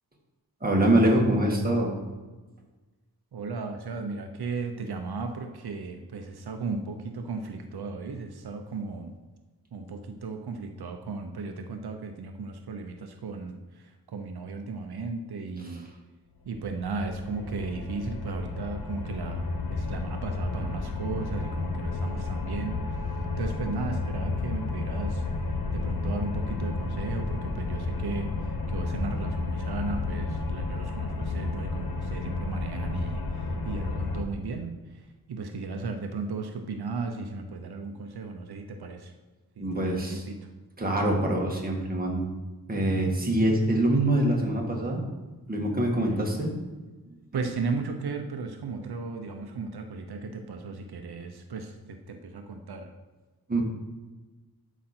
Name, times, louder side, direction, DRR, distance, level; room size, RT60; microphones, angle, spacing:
voice 1, 0.6-1.9 39.6-40.2 40.8-42.3 42.7-45.0 45.5-46.5 53.5-53.6, right 1 dB, 25° right, -1 dB, 1.8 m, -24 dB
voice 2, 3.3-9.1 9.7-15.8 16.4-39.1 39.6-40.5 47.3-52.9, right 4 dB, 85° right, 5 dB, 0.8 m, -36 dB
sound 1, 16.5-34.2, left 3 dB, 70° left, 0.9 m, -32 dB
11.5 x 5.1 x 4.4 m, 1.2 s
wide cardioid pair, 125°, 37 cm